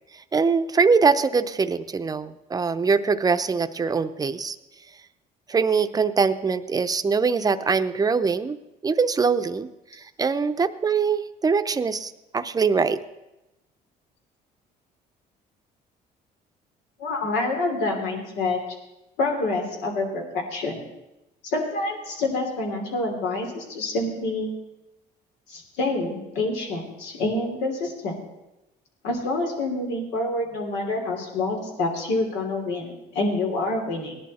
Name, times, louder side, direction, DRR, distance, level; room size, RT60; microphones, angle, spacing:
voice 1, 0.3-4.6 5.5-8.6 8.8-13.0, right 5 dB, 20° right, 10 dB, 0.7 m, -23 dB
voice 2, 17.0-18.6 19.2-20.8 21.4-24.5 25.5-28.1 29.0-34.2, left 2 dB, 90° left, 2 dB, 3.1 m, -27 dB
18.0 x 11.0 x 4.2 m, 0.96 s
cardioid pair, 110°, 17 cm